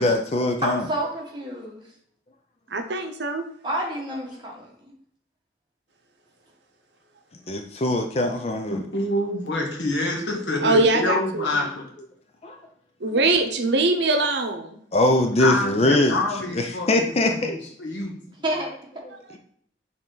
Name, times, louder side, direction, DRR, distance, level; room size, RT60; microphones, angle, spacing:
voice 1, 0.0-0.9 7.5-8.8 9.9-10.8 11.1-11.7 12.4-12.6 13.1-13.2 14.9-17.6, left 1 dB, 35° left, 4 dB, 0.5 m, -23 dB
voice 2, 0.6-1.8 3.6-4.9 18.4-18.7, right 1 dB, 25° right, -2 dB, 1.5 m, -29 dB
voice 3, 2.7-3.4 10.6-11.7 13.0-14.8, right 2 dB, 70° right, 6 dB, 0.8 m, -22 dB
voice 4, 8.9-11.9 15.4-17.0 17.5-18.1, left 2 dB, 80° left, 0 dB, 1.6 m, -26 dB
6.6 x 3.7 x 3.9 m, 0.64 s
head